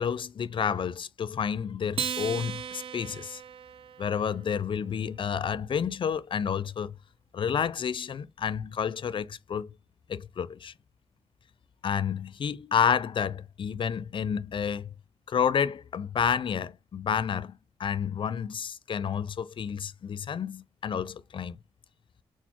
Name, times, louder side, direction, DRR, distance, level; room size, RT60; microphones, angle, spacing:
voice 1, 0.0-3.4 4.0-6.9 7.3-9.7 10.1-10.7 11.8-14.9 15.3-17.5 17.8-21.6, left 7 dB, 50° left, 0.4 m, -30 dB
Acoustic guitar, 1.9-4.6, right 7 dB, 55° right, 0.3 m, -36 dB
4.1 x 2.0 x 2.8 m
cardioid pair, 60°, 11 cm